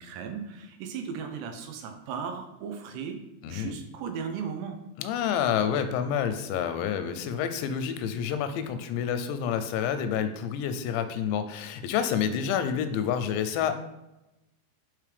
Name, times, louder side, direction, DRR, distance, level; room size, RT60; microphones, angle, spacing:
voice 1, 0.0-4.8, right 6 dB, 80° right, 5 dB, 2.6 m, -36 dB
voice 2, 3.4-3.8 5.0-13.7, left 8 dB, 85° left, 10 dB, 2.8 m, -28 dB
8.5 x 3.5 x 3.3 m, 0.95 s
omnidirectional pair, 5.0 m